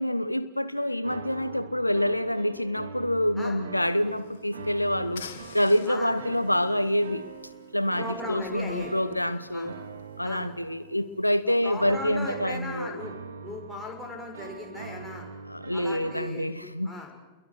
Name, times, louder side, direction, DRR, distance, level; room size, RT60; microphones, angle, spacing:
voice 1, 0.0-5.2 5.5-7.2 7.7-9.7 10.2-13.0 15.4-16.9, left 1 dB, 85° left, 0.7 m, -27 dB
sound 1, 0.7-16.3, right 5 dB, 70° right, 1.9 m, -43 dB
sound 2, 3.7-12.0, left 6 dB, 60° left, 2.2 m, -50 dB
voice 2, 8.0-9.0 9.5-9.7 10.2-10.5 11.6-13.1 13.4-15.2 15.7-16.5 16.8-17.2, left 2 dB, 5° left, 7.0 m, -38 dB
28.5 x 22.5 x 6.4 m
figure-of-eight pair, 90°, 0 cm